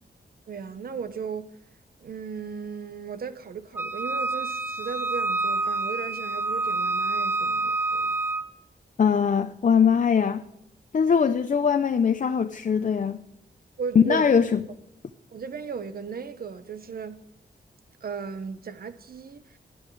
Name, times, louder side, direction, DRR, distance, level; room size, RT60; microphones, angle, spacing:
voice 1, 0.5-1.5 2.0-8.1 13.8-14.3 15.3-17.2 18.0-19.6, right 6 dB, 55° right, 0.9 m, -36 dB
Wind instrument woodwind instrument, 3.8-8.5, right 3 dB, 10° right, 1.0 m, -27 dB
voice 2, 9.0-10.4 10.9-13.2 13.9-14.6, left 6 dB, 45° left, 0.6 m, -21 dB
18.0 x 12.5 x 3.2 m
wide cardioid pair, 170°, 18 cm